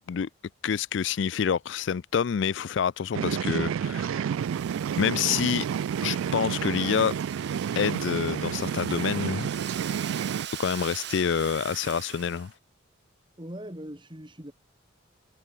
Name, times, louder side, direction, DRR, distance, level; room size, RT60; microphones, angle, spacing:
voice 1, 0.6-4.3 5.0-5.7 6.0-7.2 7.8-9.5 10.6-12.5, left 7 dB, 60° left, 0.4 m, -27 dB
sound 1, 3.1-10.5, right 8 dB, 80° right, 0.3 m, -30 dB
Domestic sounds home sounds, 4.3-12.5, right 9 dB, 55° right, 4.1 m, -41 dB
voice 2, 13.4-14.5, equal, 25° right, 3.0 m, -40 dB
head